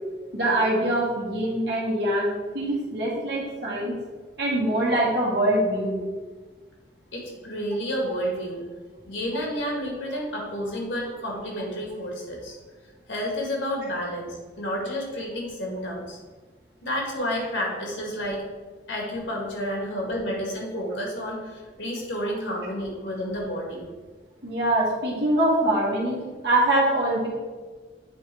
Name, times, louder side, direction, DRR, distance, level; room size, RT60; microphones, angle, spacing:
voice 1, 0.3-4.0 4.4-6.0 9.3-9.4 24.4-27.3, right 1 dB, 65° right, -5 dB, 1.8 m, -24 dB
voice 2, 7.1-8.7 9.1-12.6 13.1-16.2 16.8-18.4 18.9-23.9, equal, 90° left, -1 dB, 1.9 m, -30 dB
8.3 x 3.4 x 4.6 m, 1.4 s
head